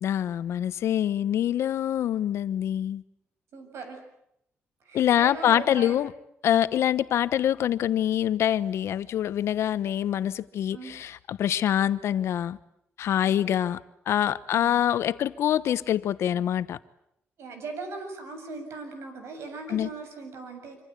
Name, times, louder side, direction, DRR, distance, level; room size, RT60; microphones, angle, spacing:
voice 1, 0.0-3.0 4.9-6.1 6.4-12.6 13.0-13.8 14.1-16.8 19.7-19.9, left 10 dB, 75° left, 1.1 m, -25 dB
voice 2, 3.5-4.0 4.8-6.0 10.7-10.9 13.2-13.6 14.5-14.8 17.4-20.8, right 3 dB, 75° right, 7.6 m, -39 dB
26.0 x 26.0 x 8.3 m
cardioid pair, 130°, 5 cm